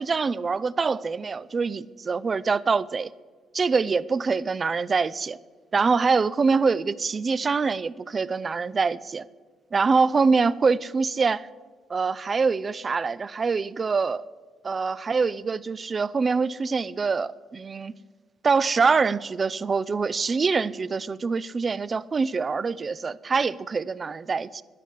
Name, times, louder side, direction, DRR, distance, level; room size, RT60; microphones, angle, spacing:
voice 1, 0.0-3.1 3.5-5.4 5.7-9.3 9.7-11.5 11.9-14.2 14.6-17.9 18.4-24.6, right 4 dB, 30° right, 0.4 m, -24 dB
11.0 x 10.5 x 8.4 m
cardioid pair, 130°, 0 cm